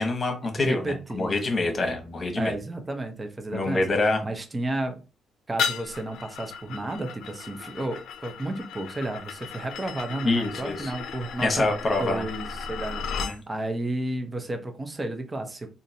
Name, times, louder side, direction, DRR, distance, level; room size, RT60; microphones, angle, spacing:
voice 1, 0.0-2.5 3.5-4.2 10.2-10.9 11.4-12.3 13.1-13.4, left 2 dB, 35° left, 1.1 m, -26 dB
voice 2, 0.6-1.3 2.3-3.8 4.2-5.0 5.5-13.0 13.5-15.7, right 2 dB, 25° right, 0.7 m, -32 dB
sound 1, 5.6-13.4, left 6 dB, 75° left, 0.5 m, -35 dB
3.7 x 2.6 x 2.7 m
cardioid pair, 90°, 0 cm